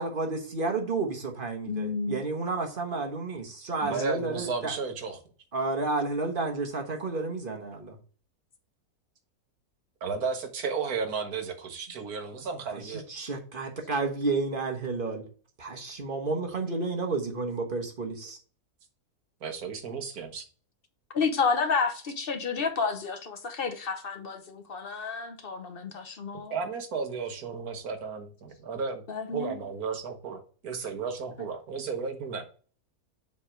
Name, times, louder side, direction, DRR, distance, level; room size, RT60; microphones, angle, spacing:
voice 1, 0.0-4.8 5.5-8.0 12.7-15.2 15.6-18.4, right 3 dB, 40° right, 1.2 m, -31 dB
voice 2, 1.7-2.2 21.1-26.6 29.1-29.6, left 5 dB, 45° left, 1.0 m, -30 dB
voice 3, 3.8-5.2 10.0-13.0 19.4-20.4 26.5-29.0 29.3-32.4, right 5 dB, 75° right, 1.7 m, -33 dB
7.4 x 3.5 x 4.5 m
omnidirectional pair, 1.6 m